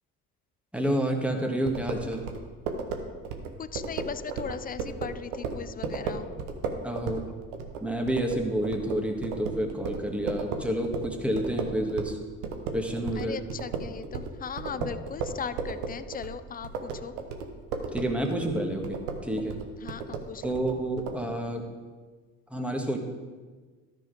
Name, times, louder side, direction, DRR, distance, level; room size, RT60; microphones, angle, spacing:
voice 1, 0.7-2.3 6.8-7.2 7.8-12.2 12.7-13.4 17.9-19.6 20.4-21.6 22.5-23.0, right 1 dB, 5° right, 2 dB, 1.6 m, -29 dB
sound 1, 1.7-12.2 12.4-21.2, right 5 dB, 80° right, 1.1 m, -35 dB
voice 2, 3.6-6.3 13.2-17.1 19.8-20.6, left 7 dB, 20° left, 13 dB, 0.3 m, -38 dB
13.0 x 4.4 x 5.1 m, 1.4 s
hypercardioid pair, 55°, 47 cm